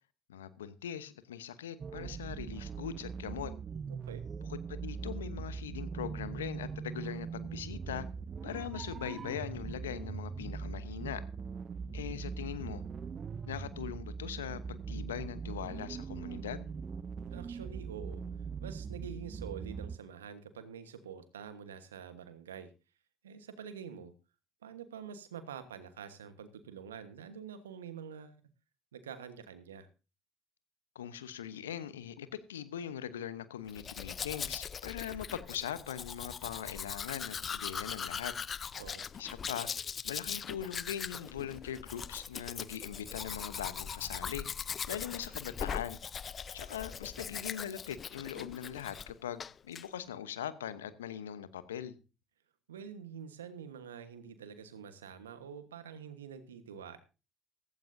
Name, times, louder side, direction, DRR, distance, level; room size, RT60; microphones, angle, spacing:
voice 1, 0.3-3.5 4.5-8.1 8.4-11.2 11.9-12.8 13.5-16.7 30.9-38.3 39.2-39.7 40.0-44.5 44.8-46.0 46.5-51.9, left 9 dB, 85° left, 14 dB, 0.9 m, -41 dB
sound 1, 1.8-20.0, right 5 dB, 40° right, 0.6 m, -41 dB
voice 2, 3.9-4.2 17.3-18.2 18.6-22.7 23.2-24.1 24.6-28.4 28.9-29.9 38.8-39.1 52.7-57.0, right 7 dB, 85° right, 11 dB, 1.3 m, -46 dB
Domestic sounds home sounds, 33.7-49.1 49.4-49.9, left 7 dB, 40° left, 0.5 m, -40 dB
15.5 x 15.0 x 2.7 m, 0.32 s
hypercardioid pair, 50°, 0 cm